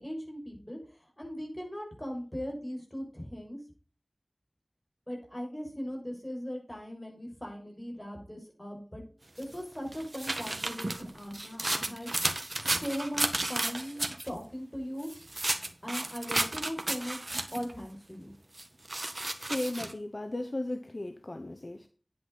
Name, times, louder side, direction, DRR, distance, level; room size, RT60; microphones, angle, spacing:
voice 1, 0.0-3.6 5.1-9.0 9.4-12.1 12.6-15.1 15.8-17.2 17.5-18.3, equal, 20° left, 6.5 m, -39 dB
sound 1, 9.4-14.3 15.0-17.7 18.6-19.9, right 2 dB, 55° right, 1.5 m, -33 dB
voice 2, 19.3-21.9, left 1 dB, 55° left, 1.0 m, -36 dB
10.0 x 9.0 x 4.1 m
wide cardioid pair, 45°, 0 cm